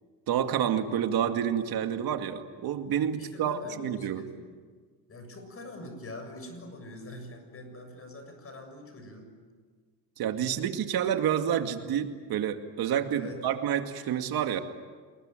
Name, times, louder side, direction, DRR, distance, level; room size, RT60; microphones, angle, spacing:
voice 1, 0.3-4.2 10.2-14.6, right 9 dB, 70° right, 6 dB, 2.3 m, -29 dB
voice 2, 3.2-4.6 5.1-9.3 13.1-13.4, left 2 dB, 35° left, 6 dB, 7.2 m, -44 dB
28.0 x 21.0 x 9.2 m, 1.5 s
cardioid pair, 110°, 38 cm